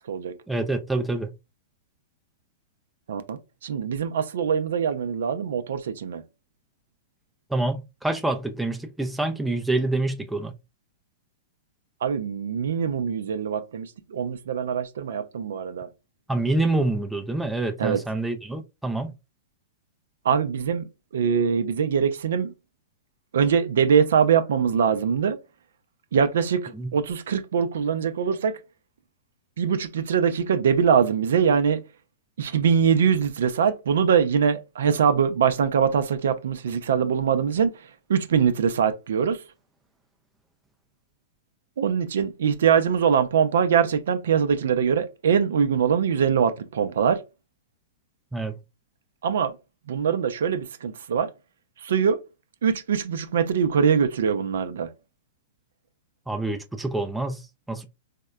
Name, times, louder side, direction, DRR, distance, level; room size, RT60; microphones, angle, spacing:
voice 1, 0.5-1.3 7.5-10.5 16.3-19.1 26.7-26.9 48.3-48.6 56.3-57.8, right 2 dB, 5° right, 0.3 m, -27 dB
voice 2, 3.1-6.2 12.0-15.9 17.8-18.0 20.2-20.9 21.1-22.5 23.3-25.4 26.1-28.6 29.6-31.8 32.4-37.7 38.1-39.4 41.8-47.2 49.2-49.5 49.9-51.3 51.8-52.2 52.6-54.9, right 7 dB, 70° right, 0.4 m, -23 dB
3.5 x 2.1 x 2.2 m
hypercardioid pair, 115°, 0 cm